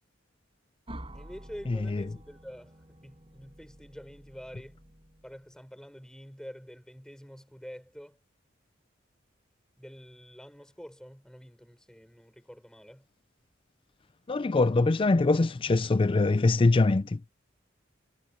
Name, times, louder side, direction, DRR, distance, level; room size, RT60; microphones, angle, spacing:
sound 1, 0.9-5.6, right 1 dB, 30° right, 6.8 m, -49 dB
voice 1, 1.1-4.8 5.2-8.2 9.8-13.1, equal, 5° left, 5.6 m, -47 dB
voice 2, 1.7-2.0 14.3-17.2, left 3 dB, 25° left, 0.4 m, -23 dB
head